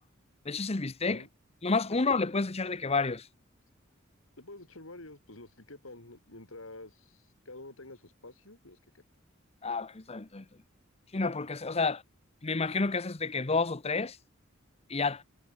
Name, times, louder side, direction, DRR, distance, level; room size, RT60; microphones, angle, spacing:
voice 1, 0.5-1.2 1.6-3.2 9.6-10.4 11.1-12.0 12.4-14.2 14.9-15.2, left 4 dB, 30° left, 0.9 m, -30 dB
voice 2, 4.4-9.0, left 2 dB, 80° left, 4.2 m, -49 dB
head